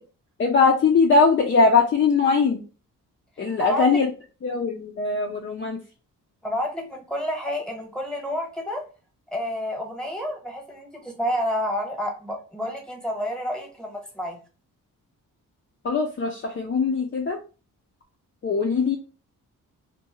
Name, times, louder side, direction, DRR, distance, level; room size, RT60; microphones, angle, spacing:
voice 1, 0.4-2.6 3.4-4.1 4.4-5.8 15.8-17.4 18.4-19.0, left 4 dB, 35° left, 1 dB, 0.5 m, -21 dB
voice 2, 3.6-4.0 6.4-8.8 9.3-14.4, left 1 dB, ahead, 1 dB, 1.0 m, -29 dB
2.6 x 2.2 x 2.8 m, 0.35 s
cardioid pair, 70°, 34 cm